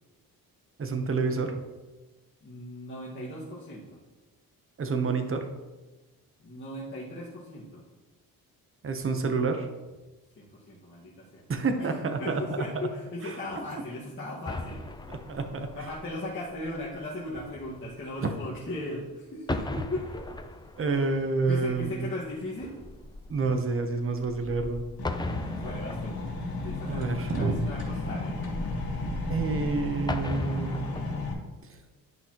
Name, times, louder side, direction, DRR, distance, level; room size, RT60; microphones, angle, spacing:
voice 1, 0.8-1.6 4.8-5.5 8.8-9.7 11.5-12.4 13.2-13.3 15.1-15.7 18.2-18.3 20.8-22.1 23.3-24.8 26.9-27.6 29.3-30.9, right 4 dB, 35° right, 6 dB, 0.9 m, -28 dB
voice 2, 2.4-4.0 6.4-7.8 10.4-11.4 11.8-14.8 15.7-20.1 20.9-21.1 21.4-22.8 25.6-26.2 26.6-28.4, left 1 dB, 35° left, -7 dB, 1.6 m, -37 dB
sound 1, 14.4-19.1 19.4-31.3, left 2 dB, 10° left, 0.5 m, -39 dB
sound 2, 25.0-31.3, left 2 dB, 75° left, 2.3 m, -34 dB
11.0 x 5.5 x 3.0 m, 1.2 s
cardioid pair, 100°, 37 cm